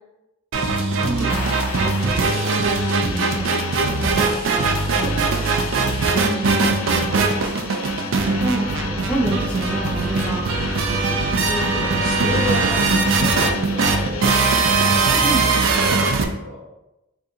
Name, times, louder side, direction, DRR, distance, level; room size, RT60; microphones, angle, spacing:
sound 1, 0.5-16.2, right 3 dB, 65° right, 0.4 m, -20 dB
voice 1, 1.0-1.4 1.7-2.6 3.1-5.3 6.2-6.6 8.2-10.9 11.4-12.3 14.2-14.3 14.6-14.7 15.2-15.4, right 1 dB, 5° left, -6 dB, 0.6 m, -30 dB
sound 2, 1.2-15.9, left 6 dB, 85° left, 0.3 m, -34 dB
sound 3, 1.3-3.1, right 1 dB, 40° right, 0.8 m, -35 dB
voice 2, 6.4-7.2 12.0-12.7 13.1-16.6, left 1 dB, 60° left, -4 dB, 1.0 m, -32 dB
2.7 x 2.4 x 3.7 m, 0.97 s
head